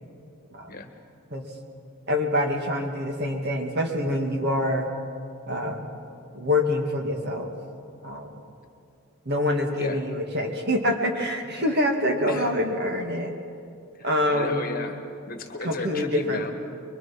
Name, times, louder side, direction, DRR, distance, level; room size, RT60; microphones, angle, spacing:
voice 1, 2.1-4.9 5.5-6.0 6.3-7.5 8.0-8.3 9.3-13.3 14.0-14.7 15.6-16.5, left 1 dB, 50° right, 3 dB, 2.2 m, -26 dB
voice 2, 13.9-16.5, left 3 dB, 40° left, 5 dB, 1.6 m, -35 dB
23.5 x 23.5 x 6.0 m, 2.4 s
head